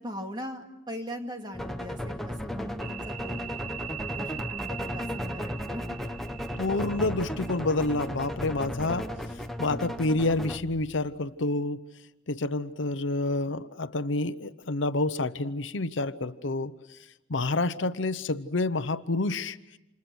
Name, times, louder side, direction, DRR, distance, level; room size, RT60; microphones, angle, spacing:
voice 1, 0.0-3.4 4.1-5.8, equal, 20° right, 3 dB, 2.4 m, -39 dB
sound 1, 1.5-10.6, equal, ahead, 1.0 m, -35 dB
sound 2, 2.8-11.4, right 9 dB, 40° right, 1.7 m, -43 dB
voice 2, 6.6-9.1 9.6-11.8 12.3-16.7 17.3-19.8, left 2 dB, 75° left, 12 dB, 0.9 m, -28 dB
29.0 x 27.5 x 6.3 m, 0.94 s
head